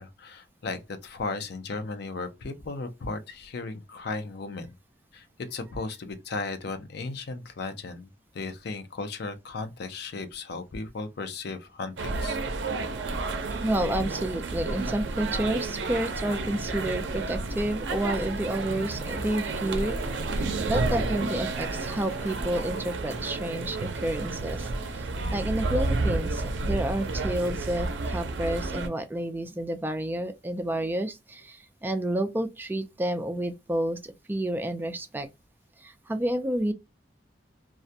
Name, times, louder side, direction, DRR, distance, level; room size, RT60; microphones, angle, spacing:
voice 1, 0.0-4.7 5.1-8.1 8.3-12.4, left 3 dB, 65° left, 0.5 m, -36 dB
sound 1, 12.0-28.9, right 3 dB, 85° right, 0.5 m, -31 dB
voice 2, 13.6-20.0 20.3-25.0 25.3-35.3 35.8-36.7, right 1 dB, 10° right, 0.3 m, -30 dB
sound 2, 14.5-22.8, equal, 45° left, 0.8 m, -38 dB
2.3 x 2.1 x 2.6 m
head